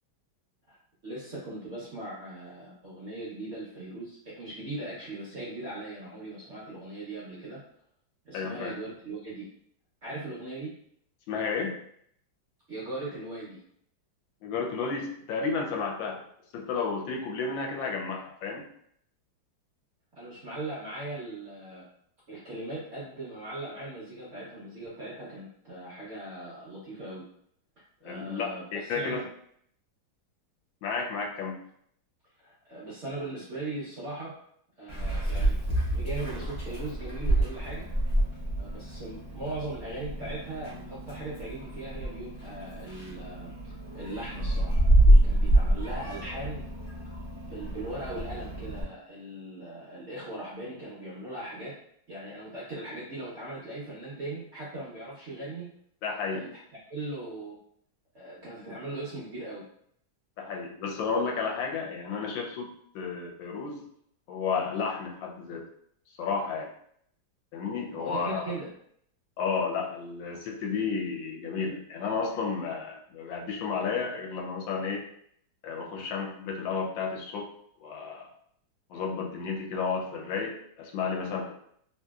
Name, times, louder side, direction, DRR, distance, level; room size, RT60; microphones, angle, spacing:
voice 1, 1.0-7.6 8.2-9.5 10.0-10.7 12.7-13.6 20.1-21.9 22.3-27.2 28.0-29.3 32.4-34.3 34.8-37.9 38.6-43.5 43.9-46.6 47.5-51.7 52.1-55.7 56.3-56.6 56.9-57.6 58.1-59.6 68.0-68.7, right 2 dB, 85° right, -7 dB, 0.6 m, -39 dB
voice 2, 8.3-8.7 11.3-11.8 14.4-16.2 16.5-18.6 28.0-29.2 30.8-31.6 56.0-56.4 60.4-62.7 62.9-63.9 64.3-65.7 66.2-66.7 67.5-68.4 69.4-75.0 75.6-77.5 77.8-78.3 78.9-81.5, left 5 dB, 75° left, 0 dB, 1.3 m, -32 dB
Meow, 34.9-48.8, right 1 dB, 45° left, 0.9 m, -27 dB
3.0 x 2.7 x 2.3 m, 0.67 s
omnidirectional pair, 2.2 m